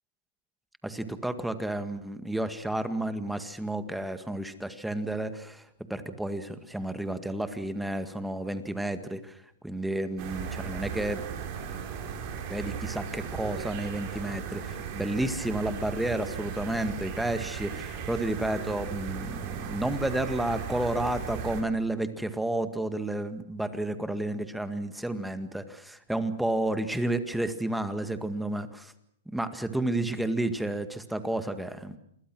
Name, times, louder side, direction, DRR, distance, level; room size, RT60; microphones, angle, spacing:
voice 1, 0.8-9.4 9.6-11.2 12.5-28.9 29.3-32.0, right 1 dB, 5° right, 10 dB, 1.9 m, -31 dB
sound 1, 10.2-21.6, right 7 dB, 40° right, 6.4 m, -37 dB
28.5 x 22.5 x 6.2 m, 0.71 s
hypercardioid pair, 140°, 0 cm